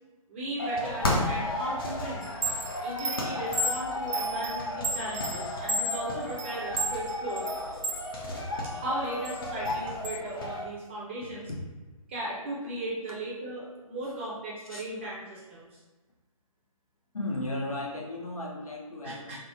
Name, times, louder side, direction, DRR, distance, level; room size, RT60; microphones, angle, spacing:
voice 1, 0.3-2.3 2.8-7.5 8.6-11.5 12.1-15.8 19.0-19.4, right 1 dB, 20° right, -5 dB, 0.6 m, -37 dB
sound 1, 0.6-10.6, left 1 dB, 40° left, 0.7 m, -33 dB
Chime, 2.2-8.1 8.5-10.2, right 1 dB, 60° right, 0.6 m, -33 dB
voice 2, 17.1-19.4, left 2 dB, 75° left, -3 dB, 1.0 m, -35 dB
3.5 x 2.0 x 4.3 m, 1.2 s
figure-of-eight pair, 145°, 18 cm